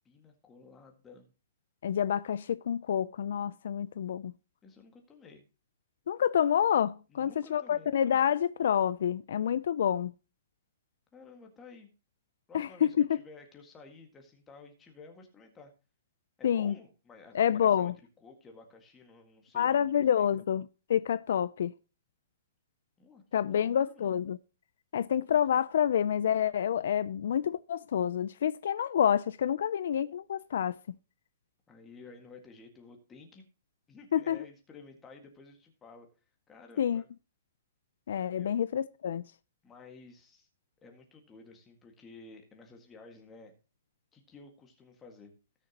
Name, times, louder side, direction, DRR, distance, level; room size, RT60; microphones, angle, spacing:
voice 1, 0.1-1.3 4.6-5.4 7.1-7.9 11.1-11.9 12.5-15.7 16.4-17.9 18.2-20.3 23.0-24.1 31.7-33.5 33.9-36.1 36.5-37.1 38.4-38.6 39.6-40.5 40.8-43.5 44.1-45.3, left 4 dB, 10° left, 1.7 m, -53 dB
voice 2, 1.8-4.3 6.1-10.1 12.5-13.2 16.4-16.7 17.3-17.9 19.5-21.7 23.3-24.4 24.9-30.8 34.1-34.4 36.8-37.0 38.1-39.2, left 9 dB, 60° left, 0.4 m, -28 dB
17.5 x 6.5 x 2.9 m
hypercardioid pair, 175°, 0 cm